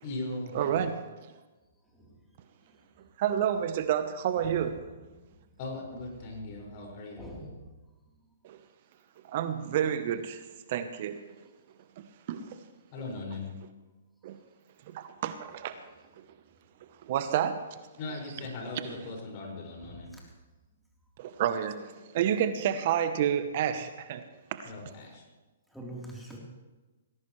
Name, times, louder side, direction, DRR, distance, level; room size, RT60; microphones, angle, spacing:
voice 1, 0.0-0.9 5.6-7.2 12.9-13.5 18.0-20.1 24.6-25.2, left 2 dB, 45° left, -1 dB, 5.9 m, -39 dB
voice 2, 0.5-1.0 3.2-4.8 8.4-8.6 9.2-11.2 12.0-12.6 14.2-14.4 14.9-15.8 16.2-16.3 17.0-17.6 21.2-24.2 24.5-24.7, right 9 dB, 50° right, 10 dB, 1.0 m, -30 dB
voice 3, 7.2-7.6 25.7-26.4, right 1 dB, ahead, -4 dB, 3.7 m, -42 dB
19.0 x 17.5 x 3.3 m, 1.2 s
hypercardioid pair, 130°, 0 cm